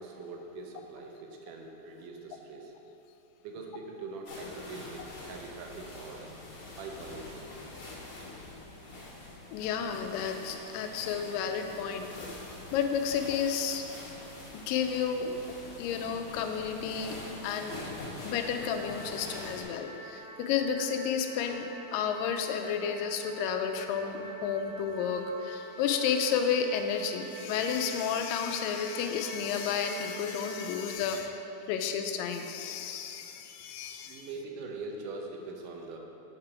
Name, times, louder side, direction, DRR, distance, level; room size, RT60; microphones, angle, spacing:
voice 1, 0.0-2.8 3.4-6.3 6.8-7.5 31.0-31.1 34.0-36.0, right 3 dB, 75° right, 1 dB, 2.2 m, -43 dB
sound 1, 4.3-19.6, left 2 dB, 55° left, 1.9 m, -45 dB
voice 2, 9.5-12.1 12.7-13.9 14.7-15.4 15.8-17.2 17.4-17.8 18.2-34.3, left 7 dB, 85° left, 6 dB, 2.2 m, -31 dB
sound 2, 18.4-30.9, right 1 dB, 30° right, 1.1 m, -46 dB
7.3 x 4.7 x 4.9 m, 2.8 s
omnidirectional pair, 3.9 m